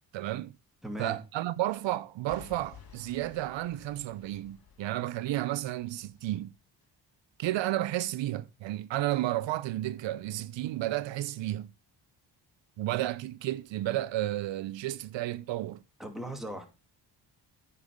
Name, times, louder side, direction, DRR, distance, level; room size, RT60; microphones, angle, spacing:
voice 1, 0.1-0.5 1.0-6.5 7.4-11.7 12.8-15.8, right 15 dB, 80° right, 0.7 m, -32 dB
voice 2, 0.8-1.2 16.0-16.6, right 1 dB, ahead, 2.8 m, -38 dB
Boom / Shatter / Crushing, 2.3-6.3 6.8-6.9, left 6 dB, 50° left, 3.0 m, -54 dB
9.5 x 5.5 x 6.6 m
cardioid pair, 95°, 44 cm